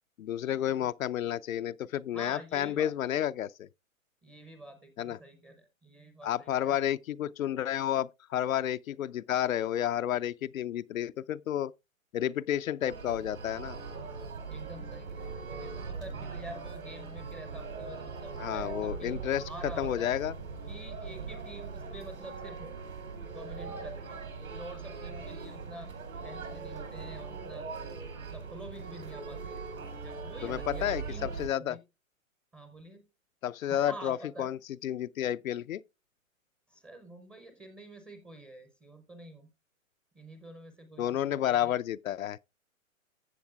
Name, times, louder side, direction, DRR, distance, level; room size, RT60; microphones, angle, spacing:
voice 1, 0.2-3.7 5.0-5.2 6.2-11.7 12.1-13.8 18.4-19.5 19.8-20.3 30.4-31.8 33.4-35.8 41.0-42.4, left 11 dB, 80° left, 0.5 m, -31 dB
voice 2, 2.1-2.9 4.2-6.8 14.5-19.2 19.5-20.1 20.7-22.7 23.3-24.2 24.5-25.9 26.2-27.7 28.2-29.6 30.0-31.3 31.6-31.8 32.5-33.0 33.6-34.5 36.7-39.5 40.1-41.7, right 1 dB, 5° right, 0.5 m, -48 dB
sound 1, 12.8-31.5, right 4 dB, 85° right, 3.6 m, -40 dB
14.5 x 7.2 x 2.3 m
hypercardioid pair, 135°, 41 cm